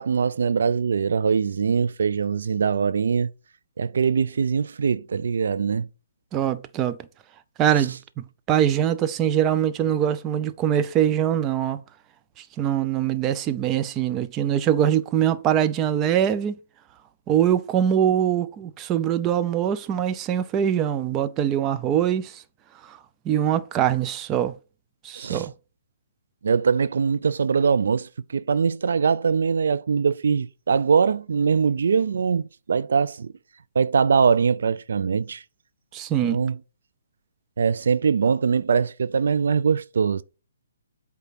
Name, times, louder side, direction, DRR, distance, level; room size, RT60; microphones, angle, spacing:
voice 1, 0.0-3.3 3.8-5.9 25.2-25.5 26.4-33.3 33.8-35.4 36.2-36.6 37.6-40.2, right 6 dB, 70° right, 0.4 m, -22 dB
voice 2, 6.3-7.0 7.6-8.0 8.5-11.8 12.6-16.6 17.3-22.4 22.9-23.0 23.3-24.5 25.0-25.5 35.9-36.4, right 10 dB, 20° right, 0.6 m, -23 dB
8.2 x 3.5 x 5.8 m
hypercardioid pair, 145°, 0 cm